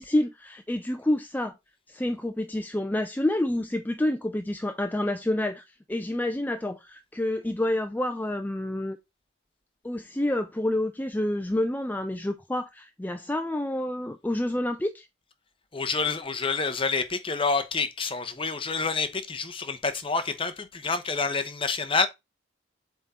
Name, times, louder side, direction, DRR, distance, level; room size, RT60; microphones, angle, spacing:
voice 1, 0.0-1.5 1.9-5.6 5.9-9.0 9.8-15.1, left 1 dB, 10° left, 0.4 m, -28 dB
voice 2, 15.7-22.1, left 4 dB, 30° left, 0.9 m, -28 dB
7.5 x 3.7 x 4.2 m
head